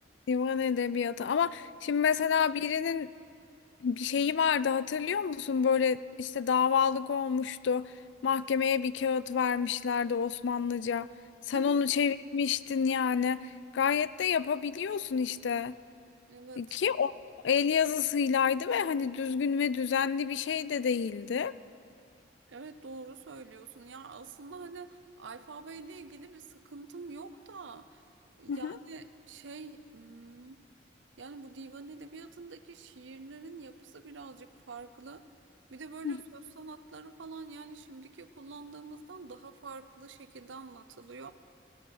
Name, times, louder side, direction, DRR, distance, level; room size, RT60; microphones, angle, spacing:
voice 1, 0.3-3.1 3.8-7.9 8.2-11.1 11.5-15.8 16.6-17.1 17.4-21.5 28.5-28.8 36.0-36.2, left 6 dB, 70° left, 18 dB, 0.4 m, -28 dB
voice 2, 11.5-11.8 16.3-16.8 22.5-28.1 28.4-30.6 31.2-35.2 35.7-41.3, right 4 dB, 80° right, 12 dB, 0.7 m, -46 dB
16.0 x 11.5 x 6.4 m, 2.4 s
head